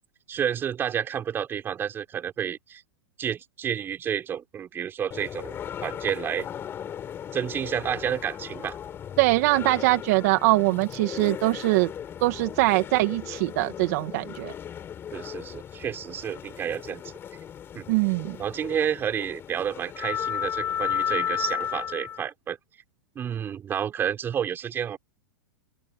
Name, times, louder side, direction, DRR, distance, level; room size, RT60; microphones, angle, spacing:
voice 1, 0.3-2.8 3.2-6.5 7.3-8.8 15.1-17.1 17.7-17.9 18.4-22.6 23.1-25.0, right 8 dB, 20° right, 4.9 m, -30 dB
sound 1, 5.1-22.3, left 9 dB, 20° left, 6.7 m, -35 dB
voice 2, 9.2-11.9 12.2-14.5 17.9-18.4, right 21 dB, 45° right, 1.5 m, -22 dB
open air
supercardioid pair, 155°, 12 cm